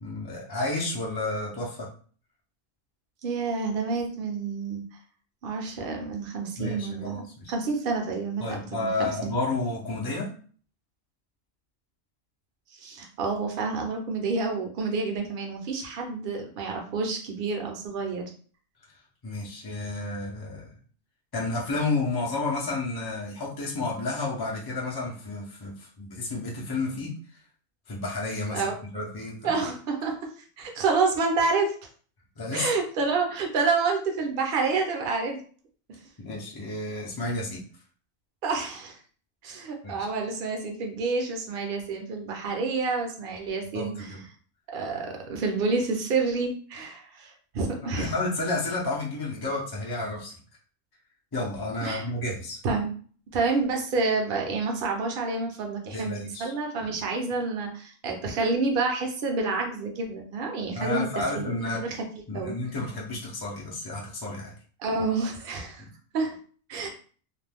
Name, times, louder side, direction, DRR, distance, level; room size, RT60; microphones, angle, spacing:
voice 1, 0.0-1.9 6.6-7.5 8.4-10.3 19.2-20.7 21.3-27.1 27.9-29.6 32.4-32.7 36.2-37.6 39.8-40.1 43.7-44.2 48.0-50.4 51.3-52.6 55.9-56.5 60.7-61.8 62.3-64.5 65.8-65.9, left 2 dB, 30° left, -3 dB, 0.4 m, -31 dB
voice 2, 3.2-4.8 5.4-9.3 12.7-18.2 28.5-28.7 29.4-31.7 32.5-35.4 35.9-36.0 38.4-39.0 39.4-44.2 44.7-48.1 51.8-52.1 52.6-52.9 53.3-61.1 61.3-62.0 62.3-62.6 64.8-65.8 66.1-66.4 66.7-66.9, right 4 dB, 50° right, 3 dB, 0.7 m, -28 dB
2.5 x 2.2 x 3.4 m, 0.43 s
omnidirectional pair, 1.4 m